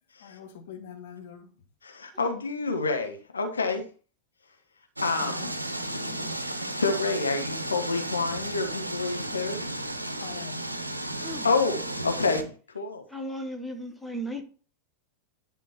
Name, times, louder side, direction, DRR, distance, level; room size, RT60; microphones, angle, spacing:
voice 1, 0.2-1.5 5.2-5.6 10.2-10.7, left 8 dB, 55° left, 1.7 m, -44 dB
voice 2, 1.8-3.8 5.0-5.5 5.9-9.9 11.4-13.0, left 4 dB, 75° left, 1.1 m, -29 dB
sound 1, 5.0-12.4, right 1 dB, 85° right, 0.8 m, -34 dB
voice 3, 13.1-14.4, equal, ahead, 1.4 m, -36 dB
10.5 x 5.1 x 4.3 m
figure-of-eight pair, 90°, 0 cm